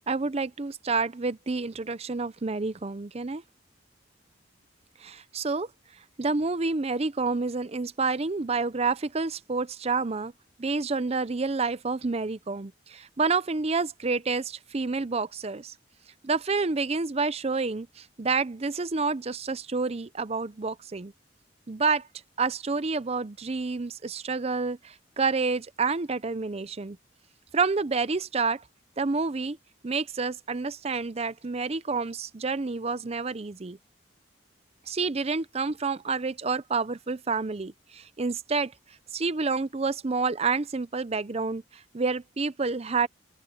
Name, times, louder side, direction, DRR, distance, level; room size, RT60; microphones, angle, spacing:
voice 1, 0.1-3.4 5.0-5.7 6.2-10.3 10.6-15.7 16.2-21.1 21.7-22.1 22.4-27.0 27.5-28.6 29.0-29.6 29.8-33.8 34.9-38.7 39.1-43.1, right 4 dB, 35° right, 0.6 m, -29 dB
open air
head